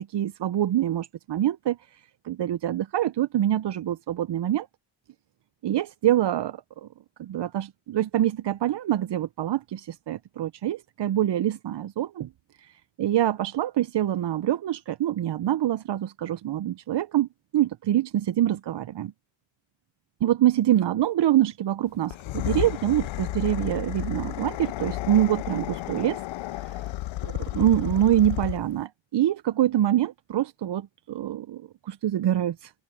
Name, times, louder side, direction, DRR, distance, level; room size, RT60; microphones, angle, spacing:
voice 1, 0.0-4.7 5.6-6.9 7.2-12.3 12.6-17.3 17.5-19.1 20.2-26.2 26.6-26.8 27.2-32.7, right 12 dB, 65° right, 0.7 m, -25 dB
sound 1, 22.0-28.8, left 16 dB, 80° left, 0.6 m, -32 dB
cardioid pair, 50°, 46 cm